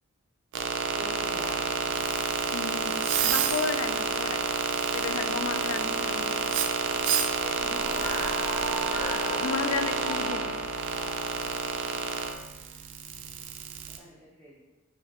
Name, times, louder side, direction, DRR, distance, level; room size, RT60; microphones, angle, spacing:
sound 1, 0.5-14.0, right 5 dB, 55° right, 0.3 m, -29 dB
voice 1, 1.0-1.6 7.4-8.3 14.0-14.6, equal, 5° left, -10 dB, 0.6 m, -44 dB
voice 2, 2.5-4.4 4.9-6.5 9.4-10.6, left 5 dB, 65° left, 8 dB, 0.3 m, -33 dB
sound 2, 7.3-11.9, equal, 35° left, 1.0 m, -37 dB
4.1 x 2.3 x 3.5 m, 1.2 s
head